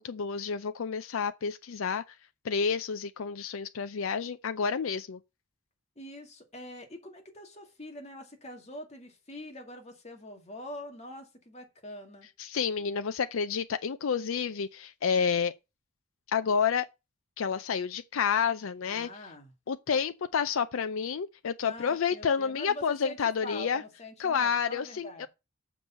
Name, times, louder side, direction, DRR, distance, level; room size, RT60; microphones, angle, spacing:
voice 1, 0.0-2.0 2.4-5.2 12.4-15.5 16.3-16.9 17.4-19.1 19.7-23.8 24.2-25.3, left 6 dB, 90° left, 0.5 m, -29 dB
voice 2, 6.0-12.3 18.9-19.5 21.6-25.3, left 1 dB, 35° left, 2.0 m, -44 dB
7.1 x 6.1 x 5.7 m
head